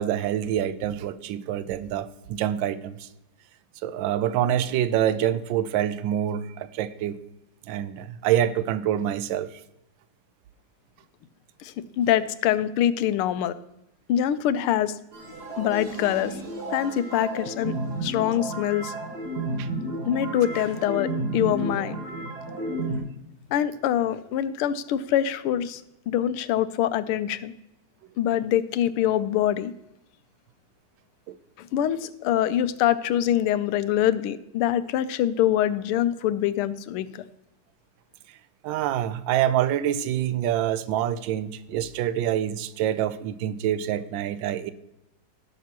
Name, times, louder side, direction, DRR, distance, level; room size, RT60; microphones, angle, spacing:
voice 1, 0.0-3.1 3.8-7.2 7.7-9.6 19.6-19.7 31.3-31.4 38.6-44.7, right 11 dB, 70° right, 14 dB, 1.2 m, -26 dB
voice 2, 11.6-13.5 14.1-14.9 15.6-16.4 16.7-17.7 18.0-18.9 20.0-22.0 23.5-25.8 26.1-27.5 28.2-29.7 31.6-37.2, left 11 dB, 90° left, 14 dB, 1.5 m, -24 dB
sound 1, 15.1-23.0, right 2 dB, 50° right, 2.1 m, -32 dB
17.0 x 6.5 x 2.9 m, 0.88 s
omnidirectional pair, 2.3 m